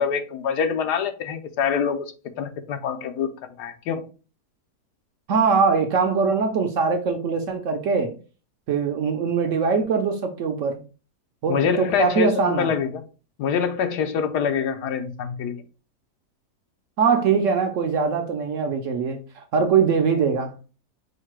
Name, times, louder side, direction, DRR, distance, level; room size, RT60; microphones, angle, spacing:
voice 1, 0.0-2.0 2.4-3.3 3.6-4.0 11.5-13.0 13.4-15.6, left 7 dB, 85° left, 1.2 m, -25 dB
voice 2, 5.3-8.1 8.7-10.8 11.4-12.7 17.0-20.5, right 5 dB, 65° right, 0.8 m, -22 dB
4.8 x 2.2 x 4.6 m
omnidirectional pair, 1.7 m